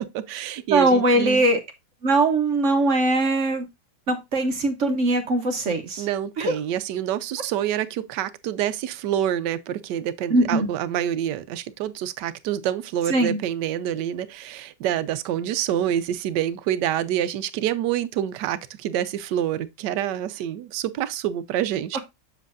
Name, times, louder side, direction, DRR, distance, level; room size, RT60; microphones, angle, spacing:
voice 1, 0.1-1.4 6.0-22.0, right 11 dB, 80° right, 1.3 m, -27 dB
voice 2, 0.7-1.6 2.0-3.7 4.1-6.1 6.4-6.5 10.3-10.7 13.1-13.4 21.9-22.0, right 2 dB, 50° right, 1.2 m, -21 dB
7.4 x 6.6 x 2.5 m
omnidirectional pair, 1.8 m